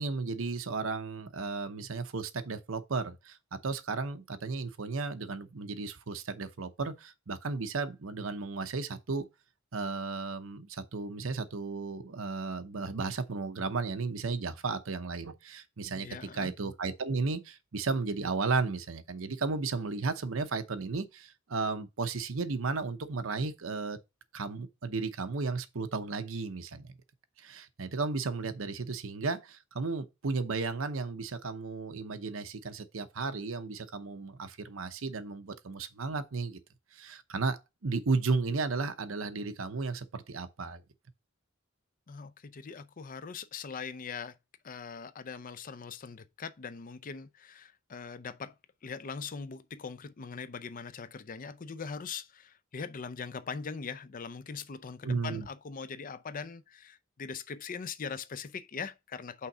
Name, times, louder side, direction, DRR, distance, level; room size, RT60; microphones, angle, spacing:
voice 1, 0.0-9.3 9.7-24.0 24.3-27.0 27.4-36.6 36.9-40.8 55.0-55.5, right 4 dB, 75° right, 0.8 m, -34 dB
voice 2, 15.9-16.5 42.1-44.4 44.6-48.6 48.8-59.5, left 5 dB, 45° left, 0.5 m, -41 dB
5.7 x 3.7 x 6.0 m
head